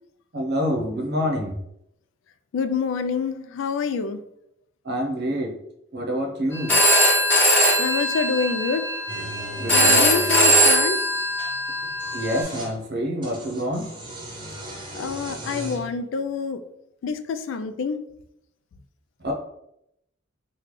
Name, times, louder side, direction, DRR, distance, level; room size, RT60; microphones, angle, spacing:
voice 1, 0.3-1.5 4.8-5.5 5.9-6.8 9.6-10.0 12.1-13.9 19.2-19.3, equal, 60° right, 0.7 m, -26 dB
voice 2, 2.5-4.2 7.8-8.8 9.7-11.0 14.9-16.6 17.0-18.0, left 5 dB, 85° left, 0.3 m, -27 dB
Telephone, 6.5-12.4, equal, 10° left, 1.1 m, -20 dB
sound 1, 9.1-10.6 11.8-12.7 13.2-15.9, equal, 25° right, 0.8 m, -36 dB
3.0 x 2.3 x 3.7 m
head